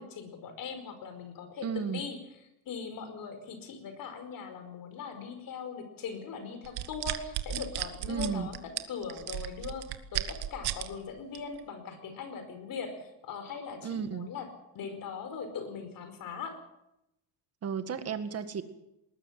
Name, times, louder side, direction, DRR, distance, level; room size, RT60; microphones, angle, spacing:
voice 1, 0.0-2.2 2.7-14.5 14.7-16.6, left 5 dB, 55° left, 8 dB, 4.9 m, -40 dB
voice 2, 1.6-2.0 8.1-8.5 13.8-14.3 17.6-18.6, right 7 dB, 40° right, 10 dB, 1.9 m, -33 dB
sound 1, 6.6-10.9 11.3-11.6, right 12 dB, 75° right, 1.7 m, -34 dB
20.0 x 20.0 x 7.5 m, 0.85 s
cardioid pair, 155°, 39 cm